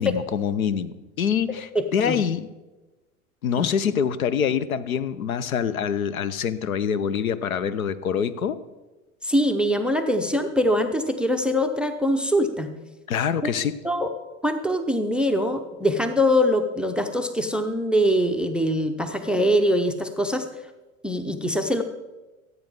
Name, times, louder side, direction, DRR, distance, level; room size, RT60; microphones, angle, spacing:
voice 1, 0.0-2.5 3.4-8.6 13.1-13.8, left 7 dB, 80° left, 16 dB, 0.7 m, -25 dB
voice 2, 1.7-2.2 3.6-3.7 9.2-12.7 13.4-13.5 13.8-14.1 14.4-20.5 21.0-21.8, equal, 5° right, 9 dB, 0.4 m, -23 dB
15.0 x 8.1 x 3.6 m, 1.1 s
figure-of-eight pair, 85°, 41 cm